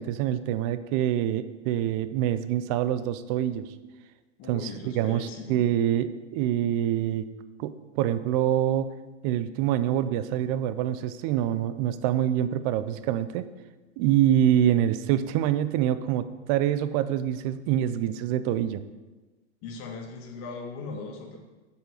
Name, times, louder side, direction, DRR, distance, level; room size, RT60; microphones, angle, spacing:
voice 1, 0.0-3.7 4.5-7.3 7.6-8.9 9.2-13.5 14.0-18.8, right 11 dB, 30° right, 13 dB, 0.5 m, -25 dB
voice 2, 4.4-5.6 19.6-21.4, left 4 dB, 35° left, 2 dB, 1.9 m, -39 dB
8.0 x 6.7 x 6.5 m, 1.2 s
hypercardioid pair, 125°, 38 cm